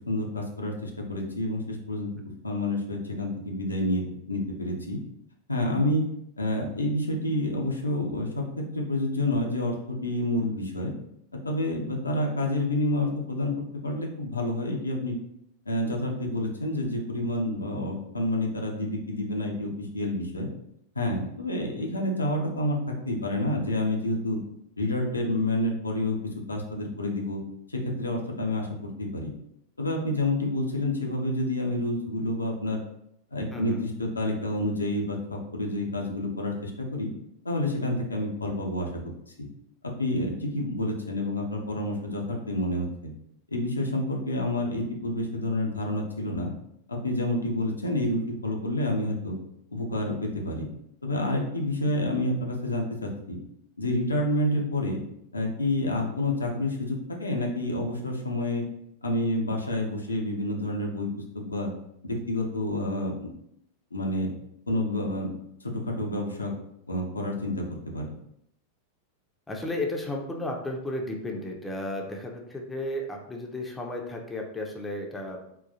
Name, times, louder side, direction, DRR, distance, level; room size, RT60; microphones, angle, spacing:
voice 1, 0.1-2.1 2.4-5.0 5.5-6.0 6.4-10.9 11.3-13.5 13.8-15.2 15.7-20.5 21.0-24.4 24.8-27.4 27.7-29.3 29.8-32.8 33.3-37.1 37.4-39.0 39.4-39.5 39.8-43.1 43.5-46.5 46.9-49.4 49.7-50.7 51.0-53.4 53.8-55.0 55.3-58.7 59.0-61.1 61.3-61.7 62.0-63.3 63.9-64.3 64.7-65.3 65.6-66.5 66.9-68.2, left 1 dB, 80° left, 0 dB, 0.5 m, -29 dB
voice 2, 33.5-33.9 69.5-75.5, left 1 dB, 10° left, 1 dB, 0.5 m, -33 dB
3.7 x 2.3 x 2.7 m, 0.75 s
figure-of-eight pair, 90°, 0 cm